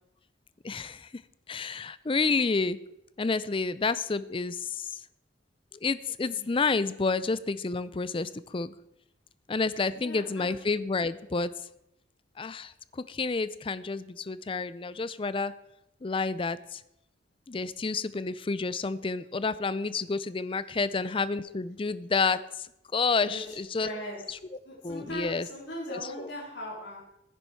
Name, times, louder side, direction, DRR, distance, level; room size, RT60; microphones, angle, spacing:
voice 1, 0.6-1.1 1.5-2.8 3.2-4.9 5.8-8.7 9.5-11.5 12.4-12.7 13.1-15.5 16.0-16.8 17.5-22.4 22.9-23.9 24.8-25.5 25.9-26.3, left 4 dB, 25° left, 16 dB, 0.4 m, -29 dB
voice 2, 9.9-10.5 23.2-24.2 24.6-27.0, left 1 dB, 65° left, -4 dB, 4.1 m, -39 dB
15.5 x 10.0 x 4.6 m, 0.84 s
head